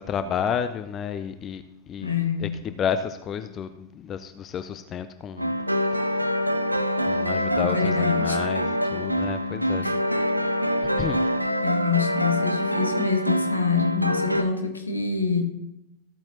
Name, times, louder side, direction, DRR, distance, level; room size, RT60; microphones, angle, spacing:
voice 1, 0.0-1.6 1.9-2.1 2.4-3.7 4.0-5.5 7.1-9.8 11.0-11.2, left 7 dB, 30° left, 11 dB, 0.5 m, -30 dB
voice 2, 2.0-2.5 7.6-8.4 9.7-9.9 11.6-15.4, left 5 dB, 80° left, 4 dB, 1.5 m, -26 dB
sound 1, 5.4-14.4, equal, 85° right, 0.5 m, -25 dB
14.5 x 8.8 x 2.9 m, 0.86 s
figure-of-eight pair, 90°, 0 cm